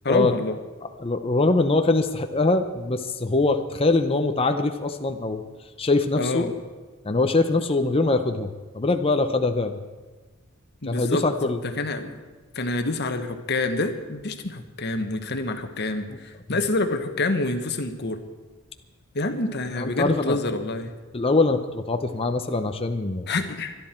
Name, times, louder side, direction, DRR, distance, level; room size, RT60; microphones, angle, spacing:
voice 1, 0.0-0.6 6.1-6.5 10.8-11.2 11.6-12.2 12.5-18.2 19.1-20.9 23.3-23.7, left 2 dB, 55° left, 7 dB, 1.3 m, -27 dB
voice 2, 1.0-5.4 5.8-6.4 7.0-8.5 8.7-9.8 10.8-11.6 19.8-20.4 21.1-23.3, left 3 dB, 25° left, 6 dB, 0.7 m, -23 dB
24.5 x 11.0 x 4.5 m, 1.3 s
head